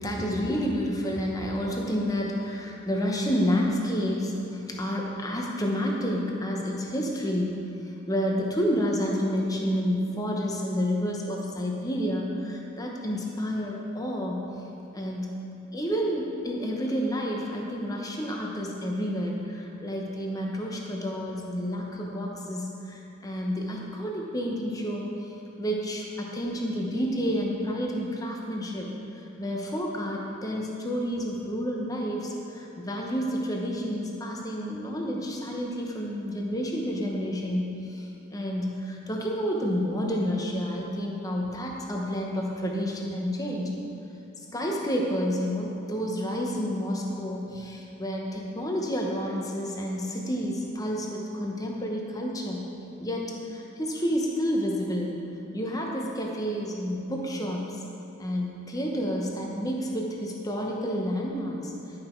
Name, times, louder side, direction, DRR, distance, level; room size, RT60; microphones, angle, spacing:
voice 1, 0.0-7.6 7.9-14.5 14.9-15.4 15.7-25.3 25.6-28.9 29.1-43.8 44.5-52.6 53.0-55.1 55.5-57.8 58.2-61.7, equal, 15° left, -1 dB, 0.9 m, -30 dB
11.0 x 5.8 x 4.5 m, 2.9 s
head